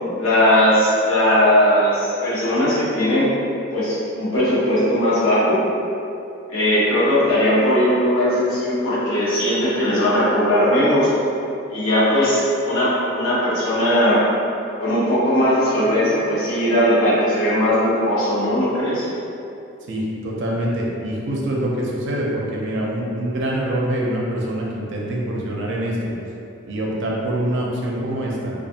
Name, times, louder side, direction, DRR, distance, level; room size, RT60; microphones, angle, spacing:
voice 1, 0.2-3.3 3.7-5.6 6.5-11.1 11.7-14.2 14.8-19.1, equal, 80° left, -9 dB, 0.8 m, -18 dB
voice 2, 19.9-26.1 26.7-28.5, right 1 dB, 60° right, -3 dB, 0.5 m, -25 dB
2.5 x 2.4 x 2.7 m, 2.7 s
head